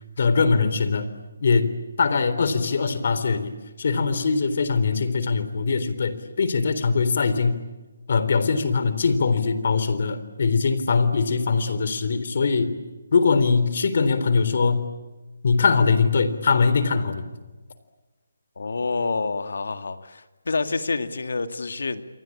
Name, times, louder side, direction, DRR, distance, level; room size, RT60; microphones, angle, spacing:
voice 1, 0.2-1.1 1.4-3.5 3.8-7.6 8.1-12.7 13.1-14.9 15.4-17.3, left 4 dB, 55° left, 12 dB, 3.7 m, -22 dB
voice 2, 18.6-22.0, left 3 dB, 75° left, 9 dB, 2.3 m, -28 dB
28.5 x 23.5 x 8.7 m, 1.2 s
hypercardioid pair, 160°, 0 cm